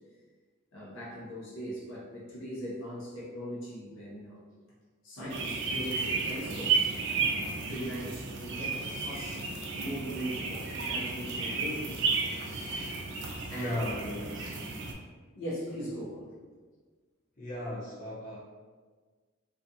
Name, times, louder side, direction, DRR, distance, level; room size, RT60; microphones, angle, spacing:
voice 1, 0.7-4.4 5.0-6.9 7.7-12.1 13.5-13.9 15.3-16.3, equal, 70° left, -6 dB, 0.7 m, -40 dB
sound 1, 5.3-14.9, right 4 dB, 55° right, 0.4 m, -33 dB
voice 2, 13.5-14.7 17.4-18.4, left 1 dB, 40° left, -7 dB, 0.7 m, -37 dB
2.4 x 2.3 x 2.6 m, 1.4 s
head